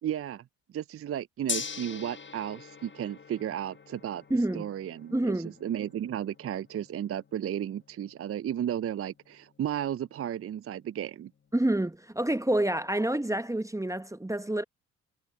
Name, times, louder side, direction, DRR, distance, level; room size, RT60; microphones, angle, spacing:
voice 1, 0.0-0.4 0.7-4.2 4.5-11.3, right 10 dB, 40° right, 0.6 m, -34 dB
Gong, 1.5-11.7, left 6 dB, 30° left, 1.3 m, -44 dB
voice 2, 4.3-4.7 5.1-5.6 11.5-14.6, right 1 dB, 10° right, 1.1 m, -28 dB
hypercardioid pair, 45°, 37 cm